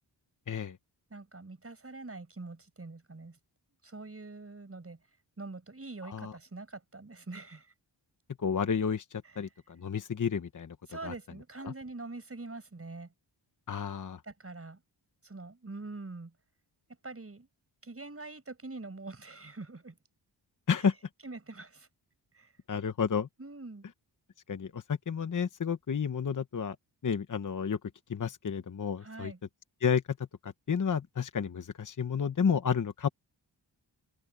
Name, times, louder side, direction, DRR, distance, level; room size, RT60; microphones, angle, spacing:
voice 1, 1.1-3.4 3.8-5.0 5.4-7.7 9.2-9.5 10.9-13.1 14.2-14.8 15.2-16.3 17.0-17.5 17.8-20.0 20.7-20.9 21.2-21.9 22.3-22.5 23.4-23.9 29.0-29.4, right 3 dB, 30° right, 6.0 m, -44 dB
voice 2, 8.4-9.0 9.4-9.5 9.8-10.7 11.0-11.1 13.7-14.2 20.7-20.9 22.7-23.3 24.5-26.8 27.0-27.8 28.1-29.3 29.8-30.0 30.4-33.1, left 6 dB, 45° left, 0.9 m, -30 dB
open air
wide cardioid pair, 155°, 45 cm